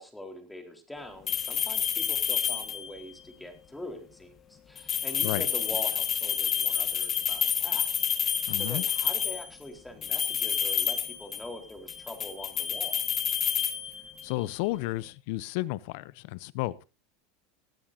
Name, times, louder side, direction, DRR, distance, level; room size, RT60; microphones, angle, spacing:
voice 1, 0.0-7.9 8.2-12.9, left 1 dB, 5° left, 5 dB, 4.0 m, -43 dB
sound 1, 1.3-3.0 4.8-9.5 10.0-11.6 11.9-14.3, left 8 dB, 35° left, 1.6 m, -29 dB
voice 2, 8.5-8.8 14.2-16.8, left 19 dB, 65° left, 20 dB, 0.7 m, -32 dB
19.5 x 13.0 x 2.7 m, 0.30 s
hypercardioid pair, 90°, 0 cm